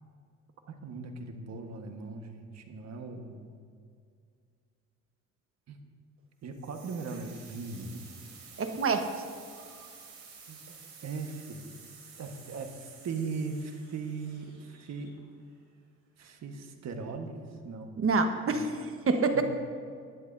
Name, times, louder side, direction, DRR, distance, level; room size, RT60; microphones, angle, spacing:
voice 1, 0.7-3.6 5.7-5.8 6.4-8.0 10.5-10.6 11.0-11.7 12.2-15.1 16.2-18.0 18.5-18.6 19.3-19.4, right 4 dB, 60° right, 4 dB, 1.4 m, -39 dB
sound 1, 6.5-15.4, right 5 dB, 80° right, 3.4 m, -52 dB
voice 2, 8.6-9.1 18.0-18.7 19.1-19.4, right 4 dB, 45° right, 6 dB, 1.3 m, -26 dB
20.0 x 11.0 x 2.7 m, 2.2 s
cardioid pair, 90°, 30 cm